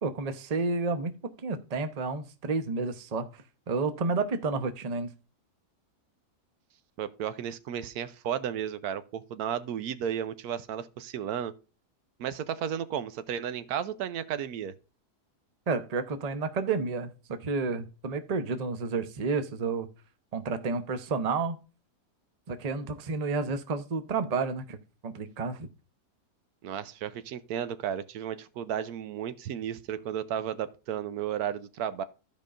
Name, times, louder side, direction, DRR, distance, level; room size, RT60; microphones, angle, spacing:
voice 1, 0.0-5.1 15.7-19.9 20.3-21.6 22.5-24.8 25.0-25.7, right 4 dB, 35° right, 0.7 m, -31 dB
voice 2, 7.0-11.5 12.2-14.7 26.6-32.0, right 9 dB, 80° right, 1.1 m, -33 dB
15.0 x 5.3 x 2.4 m
omnidirectional pair, 1.6 m